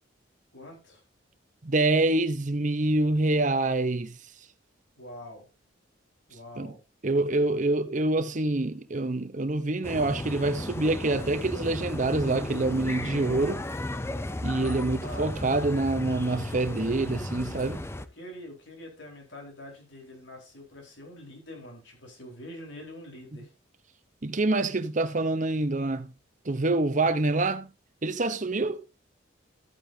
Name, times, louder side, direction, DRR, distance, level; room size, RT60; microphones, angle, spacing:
voice 1, 0.5-1.0 5.0-5.5 6.3-6.8 14.5-15.3 18.1-23.5 27.0-27.2, equal, 75° left, 4.3 m, -45 dB
voice 2, 1.6-4.2 6.6-6.7 7.0-13.7 14.4-17.8 24.2-26.1 26.4-27.7 28.0-28.8, right 2 dB, 40° right, 0.9 m, -26 dB
sound 1, 9.8-18.1, left 1 dB, 15° left, 0.6 m, -35 dB
13.5 x 8.7 x 2.8 m
head